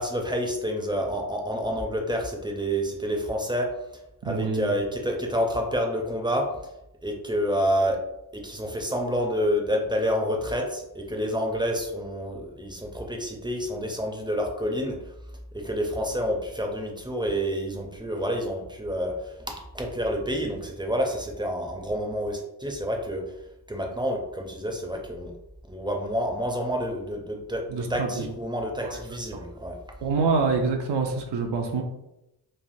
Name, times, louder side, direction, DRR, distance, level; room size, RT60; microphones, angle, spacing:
voice 1, 0.0-3.7 4.2-6.5 7.0-8.0 8.3-15.1 15.5-23.2 23.7-25.3 25.7-29.8, equal, 10° right, 2 dB, 0.4 m, -28 dB
voice 2, 4.2-4.7 27.7-28.3 28.8-29.4 30.0-31.8, right 4 dB, 85° right, 2 dB, 0.5 m, -26 dB
3.2 x 2.1 x 2.6 m, 0.87 s
wide cardioid pair, 80°, 40 cm